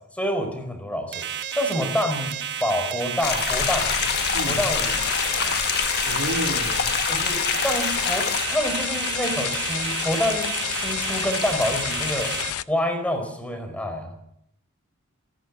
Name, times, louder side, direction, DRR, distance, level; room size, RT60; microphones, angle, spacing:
voice 1, 0.1-2.3 2.6-3.9 4.5-4.9 5.3-5.6 7.1-12.3 12.7-14.1, left 1 dB, 5° left, 6 dB, 4.5 m, -27 dB
sound 1, 1.1-12.5, right 9 dB, 50° right, 1.4 m, -31 dB
sound 2, 3.2-8.5, left 7 dB, 50° left, 1.4 m, -27 dB
sound 3, 3.5-12.6, left 11 dB, 85° left, 0.7 m, -29 dB
voice 2, 6.0-6.9, right 1 dB, 75° right, 4 dB, 2.8 m, -30 dB
27.5 x 11.0 x 9.5 m, 0.75 s
head